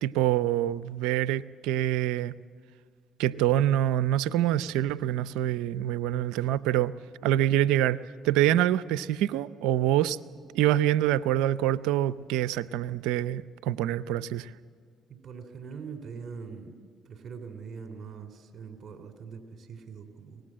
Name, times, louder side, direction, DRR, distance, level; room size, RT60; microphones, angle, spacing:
voice 1, 0.0-2.3 3.2-6.9 7.2-10.2 10.5-14.5, right 12 dB, 85° right, 16 dB, 0.5 m, -25 dB
voice 2, 15.1-16.7 17.0-20.4, right 5 dB, 55° right, 6 dB, 3.3 m, -42 dB
24.0 x 18.5 x 7.5 m, 2.1 s
supercardioid pair, 60°, 0 cm